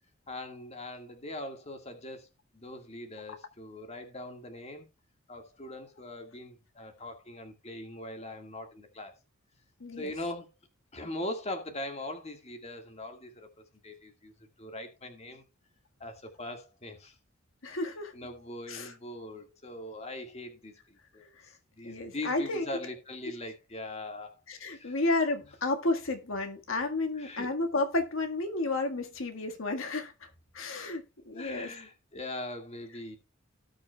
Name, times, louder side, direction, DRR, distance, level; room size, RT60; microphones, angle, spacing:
voice 1, 0.3-2.3 2.5-4.9 5.3-9.1 10.0-10.5 10.9-13.5 13.8-14.3 14.6-15.4 16.0-17.2 17.7-17.8 18.1-25.0 27.2-27.5 31.3-33.2, left 1 dB, 30° left, 1.9 m, -41 dB
voice 2, 9.8-10.1 17.6-18.1 18.7-18.9 21.8-22.7 24.5-30.3 30.5-31.7, left 2 dB, 70° left, 1.7 m, -32 dB
18.0 x 6.2 x 2.3 m
head